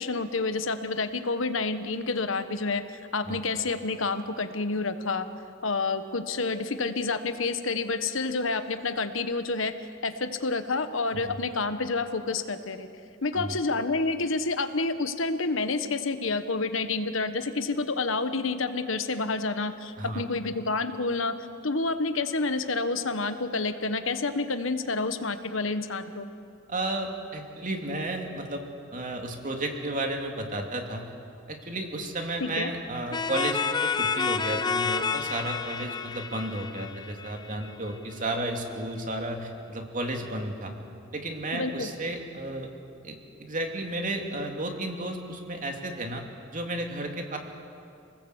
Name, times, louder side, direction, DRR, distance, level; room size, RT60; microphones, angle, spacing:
voice 1, 0.0-5.3 5.6-9.7 10.0-12.9 13.2-26.3 32.4-32.7 41.5-41.9, left 3 dB, 70° left, 9 dB, 1.3 m, -29 dB
voice 2, 26.7-28.6 28.9-31.1 31.5-40.7 41.1-42.7 43.0-46.2 46.5-47.4, right 1 dB, 40° right, 3 dB, 2.6 m, -33 dB
sound 1, 33.1-37.7, left 5 dB, 20° left, 0.7 m, -29 dB
27.5 x 19.0 x 8.1 m, 2.5 s
head